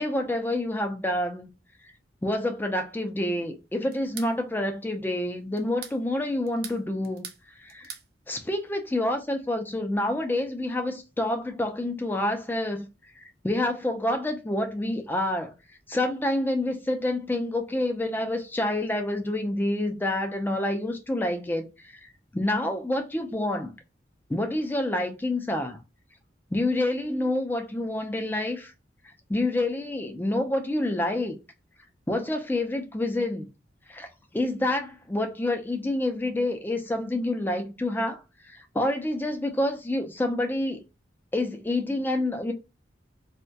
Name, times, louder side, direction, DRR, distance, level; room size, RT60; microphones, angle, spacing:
voice 1, 0.0-1.5 2.2-7.2 7.6-7.9 8.3-12.9 13.2-15.5 15.9-22.1 22.3-23.7 24.3-25.8 26.5-28.7 29.3-31.4 32.1-33.5 33.9-34.1 34.3-40.8 41.3-42.5, left 1 dB, 10° left, 0.3 m, -28 dB
sound 1, 3.9-4.3 5.6-6.0 6.5-7.4 7.7-8.1, right 8 dB, 55° right, 0.4 m, -41 dB
2.2 x 2.1 x 2.6 m
head